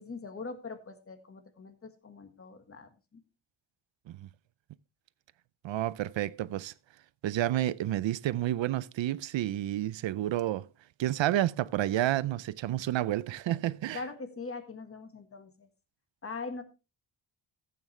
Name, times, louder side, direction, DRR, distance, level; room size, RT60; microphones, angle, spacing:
voice 1, 0.0-2.9 13.9-15.7 16.2-16.6, left 4 dB, 30° left, 1.6 m, -42 dB
voice 2, 5.6-6.7 7.2-10.7 11.0-14.0, right 13 dB, 70° right, 0.6 m, -30 dB
14.5 x 8.8 x 3.2 m
wide cardioid pair, 155°, 48 cm